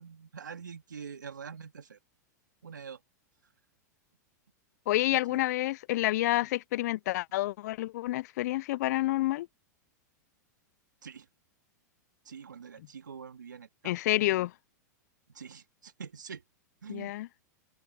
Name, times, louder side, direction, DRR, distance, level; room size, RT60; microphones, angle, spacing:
voice 1, 0.0-2.0 2.6-3.0 5.1-5.4 11.0-11.3 12.3-14.2 15.3-16.4 16.8-17.1, right 6 dB, 90° right, 2.3 m, -45 dB
voice 2, 4.9-9.5 13.8-14.5 16.9-17.3, left 17 dB, 65° left, 0.4 m, -29 dB
hypercardioid pair, 105°, 10 cm